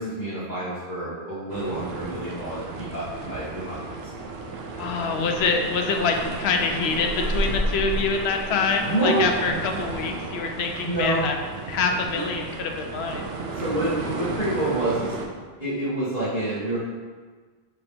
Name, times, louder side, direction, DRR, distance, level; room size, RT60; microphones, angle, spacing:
voice 1, 0.0-3.8 8.9-9.3 10.8-11.2 12.1-12.2 13.5-15.1 15.6-16.8, right 1 dB, 50° left, -13 dB, 1.6 m, -27 dB
sound 1, 1.5-15.3, right 2 dB, 75° right, 0.8 m, -32 dB
voice 2, 4.8-11.4 11.7-13.3, left 4 dB, 85° left, 3 dB, 0.8 m, -25 dB
5.4 x 2.9 x 3.4 m, 1.4 s
omnidirectional pair, 1.1 m